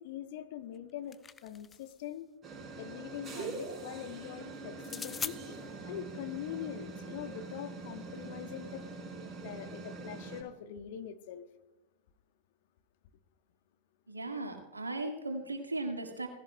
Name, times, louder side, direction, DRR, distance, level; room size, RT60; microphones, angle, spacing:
voice 1, 0.0-2.3 2.8-5.4 5.8-8.8 9.4-11.5, left 10 dB, 50° left, 9 dB, 1.1 m, -43 dB
sound 1, 0.7-2.0 4.8-5.4, left 6 dB, 20° left, 0.5 m, -41 dB
sound 2, 2.4-10.4, right 3 dB, 25° right, 4.5 m, -44 dB
voice 2, 14.1-16.3, right 2 dB, 80° right, 4 dB, 2.0 m, -37 dB
18.0 x 16.0 x 2.3 m, 1.1 s
figure-of-eight pair, 90°, 0 cm